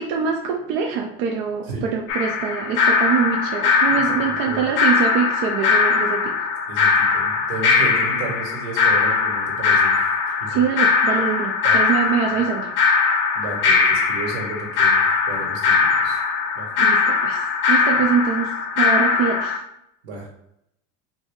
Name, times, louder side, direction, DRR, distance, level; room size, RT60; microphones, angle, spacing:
voice 1, 0.0-6.5 10.5-12.7 16.8-19.6, right 6 dB, 55° right, 2 dB, 0.4 m, -24 dB
sound 1, 2.1-19.6, left 5 dB, 45° left, 0.4 m, -20 dB
voice 2, 3.9-4.6 6.7-9.9 10.3-10.6 11.6-11.8 13.3-16.2 16.5-16.7 20.0-20.3, right 3 dB, 85° right, -1 dB, 1.4 m, -33 dB
3.0 x 2.7 x 3.5 m, 0.78 s
cardioid pair, 175°, 29 cm